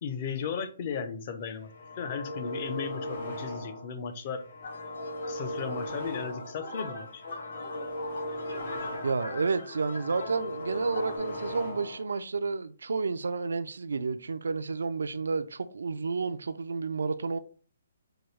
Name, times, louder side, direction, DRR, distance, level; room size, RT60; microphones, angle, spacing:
voice 1, 0.0-1.7 2.0-4.4 5.3-7.2, left 6 dB, 35° left, 0.5 m, -35 dB
sound 1, 1.6-3.9 4.3-6.7 7.0-9.4 9.7-12.1, left 1 dB, 60° left, 1.7 m, -38 dB
sound 2, 4.6-11.2, left 2 dB, 80° left, 1.5 m, -42 dB
voice 2, 9.0-17.4, right 4 dB, 85° right, 0.3 m, -31 dB
4.7 x 2.3 x 3.1 m
hypercardioid pair, 160°, 0 cm